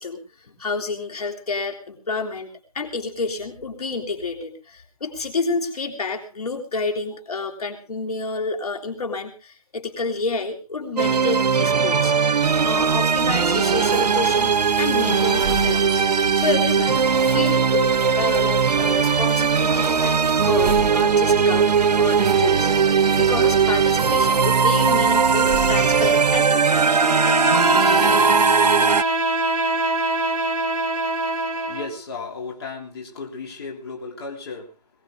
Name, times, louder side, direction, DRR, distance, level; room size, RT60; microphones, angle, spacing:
voice 1, 0.0-12.1 12.6-16.0 16.3-27.2, left 3 dB, 65° left, 2 dB, 3.7 m, -29 dB
sound 1, 11.0-29.0, right 6 dB, 85° right, 0.8 m, -19 dB
sound 2, 12.4-26.4, right 3 dB, 20° right, 5.6 m, -34 dB
Bowed string instrument, 26.8-32.0, right 1 dB, 55° right, 1.9 m, -23 dB
voice 2, 31.7-34.7, left 4 dB, 40° left, -1 dB, 3.6 m, -34 dB
22.5 x 19.0 x 2.5 m, 0.31 s
hypercardioid pair, 170°, 20 cm